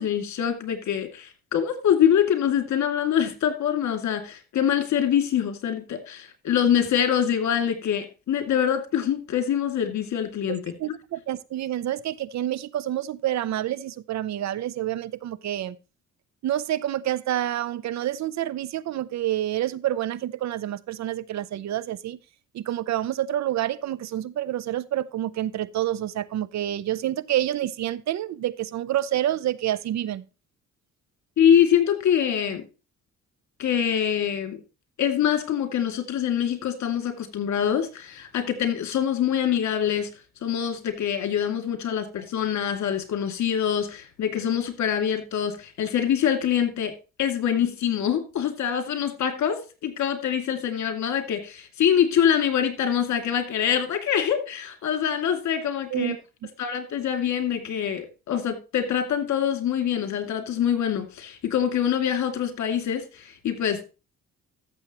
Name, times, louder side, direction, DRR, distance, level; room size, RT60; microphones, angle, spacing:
voice 1, 0.0-10.6 31.4-32.6 33.6-34.6 35.0-40.1 40.4-56.1 56.6-63.8, left 9 dB, 65° left, 2.5 m, -24 dB
voice 2, 10.5-15.8 16.4-22.2 22.5-30.2 55.9-56.2, right 12 dB, 65° right, 0.7 m, -28 dB
14.0 x 7.2 x 3.0 m
cardioid pair, 90°, 30 cm